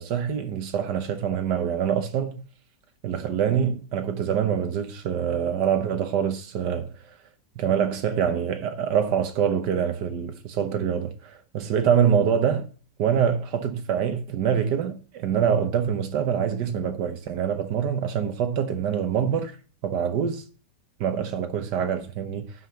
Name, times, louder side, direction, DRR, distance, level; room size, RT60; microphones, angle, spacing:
voice 1, 0.0-2.4 3.0-6.9 7.6-12.7 13.0-19.5 19.8-20.4 21.0-22.5, right 8 dB, 75° right, 1.6 m, -25 dB
15.5 x 5.6 x 2.8 m
omnidirectional pair, 1.9 m